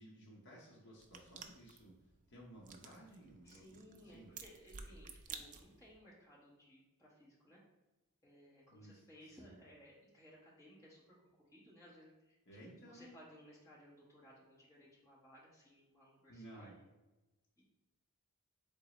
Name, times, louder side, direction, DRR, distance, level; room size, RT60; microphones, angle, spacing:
voice 1, 0.0-1.9 2.3-4.3 8.7-9.6 12.5-13.1 16.3-16.7, right 1 dB, 55° left, -3 dB, 0.9 m, -56 dB
sound 1, 1.0-6.0, right 6 dB, 35° right, 0.3 m, -53 dB
voice 2, 3.4-7.6 8.2-16.7 17.6-17.7, equal, 15° left, -7 dB, 1.4 m, -61 dB
3.9 x 3.7 x 3.0 m, 1.1 s
head